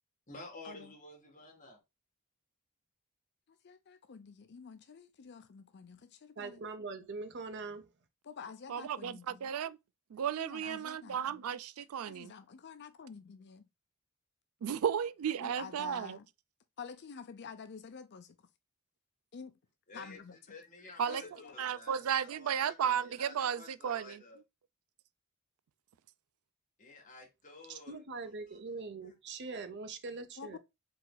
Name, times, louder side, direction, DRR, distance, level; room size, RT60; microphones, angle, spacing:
voice 1, 0.3-1.8 19.9-20.2 20.5-24.4 26.8-28.0, left 2 dB, 40° left, 2.1 m, -51 dB
voice 2, 3.5-6.6 8.2-9.5 10.4-11.4 12.0-13.7 15.4-16.3 16.8-18.4 19.3-19.6 19.9-20.4 21.1-21.6 30.4-30.6, left 6 dB, 55° left, 0.5 m, -49 dB
voice 3, 6.4-7.9 27.7-30.6, right 3 dB, 55° right, 0.8 m, -42 dB
voice 4, 8.7-9.8 10.1-12.3 14.6-16.2 21.0-21.2 21.6-24.2, right 8 dB, 85° right, 0.4 m, -34 dB
4.7 x 4.0 x 2.2 m
head